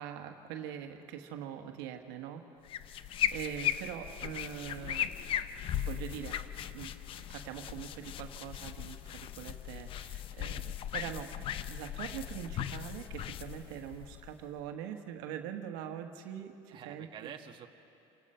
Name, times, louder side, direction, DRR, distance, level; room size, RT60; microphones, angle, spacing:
voice 1, 0.0-2.5 3.3-5.1 5.7-6.4 6.7-6.9 7.3-16.6 16.8-17.3, right 9 dB, 85° right, 5 dB, 1.5 m, -43 dB
sound 1, 2.6-14.6, left 10 dB, 50° left, 0.7 m, -38 dB
voice 2, 4.7-5.0 16.7-17.7, right 9 dB, 40° right, 3 dB, 1.4 m, -48 dB
28.5 x 18.0 x 5.7 m, 2.8 s
cardioid pair, 120°, 12 cm